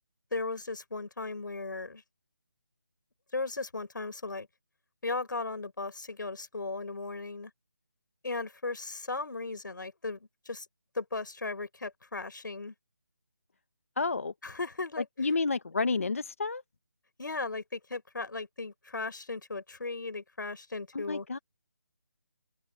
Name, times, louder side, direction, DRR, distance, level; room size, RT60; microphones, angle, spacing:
voice 1, 0.3-2.0 3.3-4.5 5.0-7.5 8.2-10.7 10.9-12.7 14.4-15.1 17.2-21.3, left 3 dB, 65° left, 5.9 m, -36 dB
voice 2, 14.0-14.3 15.2-16.6 20.9-21.4, left 4 dB, 40° left, 1.1 m, -30 dB
open air
figure-of-eight pair, 180°, 11 cm